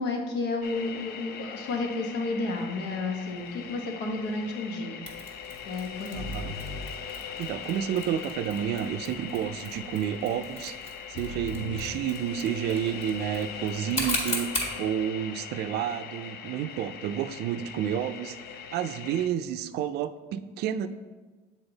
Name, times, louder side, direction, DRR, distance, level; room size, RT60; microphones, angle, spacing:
voice 1, 0.0-5.4 5.6-6.4, left 3 dB, 90° left, 2 dB, 1.1 m, -32 dB
sound 1, 0.6-19.3, left 8 dB, 70° left, 0.5 m, -41 dB
Mechanisms, 5.1-14.8, left 1 dB, 40° left, 1.6 m, -38 dB
sound 2, 6.1-7.8 11.1-12.0, left 2 dB, 55° left, 1.6 m, -40 dB
voice 2, 6.1-6.5 7.4-10.8 11.1-14.5 14.8-18.4 18.7-20.9, right 10 dB, 75° right, 12 dB, 0.4 m, -30 dB
7.1 x 4.2 x 3.9 m, 1.3 s
cardioid pair, 110°, 17 cm